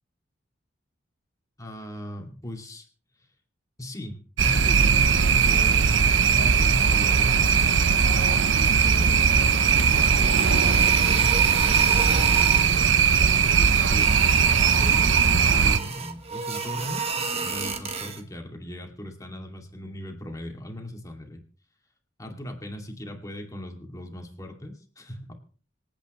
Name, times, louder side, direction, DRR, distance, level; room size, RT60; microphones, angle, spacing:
voice 1, 1.6-2.9 3.8-4.2 4.4-9.4 9.8-12.6 13.6-21.4 22.2-25.3, equal, 20° left, 2 dB, 2.4 m, -38 dB
sound 1, 4.4-15.8, right 6 dB, 75° right, 0.7 m, -19 dB
sound 2, 9.2-12.7 13.6-18.2, right 5 dB, 35° right, 1.5 m, -32 dB
26.0 x 8.8 x 3.1 m, 0.41 s
head